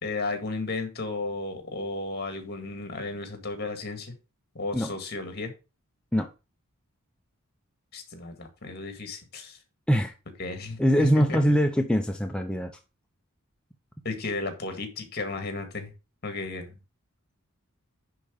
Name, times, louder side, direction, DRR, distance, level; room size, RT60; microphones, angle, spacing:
voice 1, 0.0-4.1 4.5-5.5 7.9-9.6 10.4-10.8 11.1-11.4 14.0-15.9 16.2-16.7, left 3 dB, 50° left, 2.0 m, -33 dB
voice 2, 10.8-12.8, equal, 5° left, 0.6 m, -23 dB
10.0 x 3.9 x 5.1 m
head